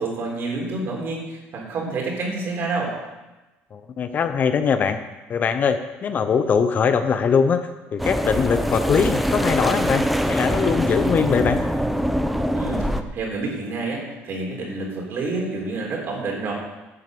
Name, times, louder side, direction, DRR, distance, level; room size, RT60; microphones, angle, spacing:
voice 1, 0.0-3.0 12.5-12.8 13.1-16.5, right 3 dB, 50° right, -1 dB, 3.6 m, -28 dB
voice 2, 3.7-5.0 5.3-7.6 7.9-10.0 10.3-11.6, left 6 dB, 35° left, 9 dB, 0.7 m, -21 dB
sound 1, 8.0-13.0, equal, ahead, 0.6 m, -23 dB
11.0 x 6.4 x 7.7 m, 1.1 s
cardioid pair, 140°, 5 cm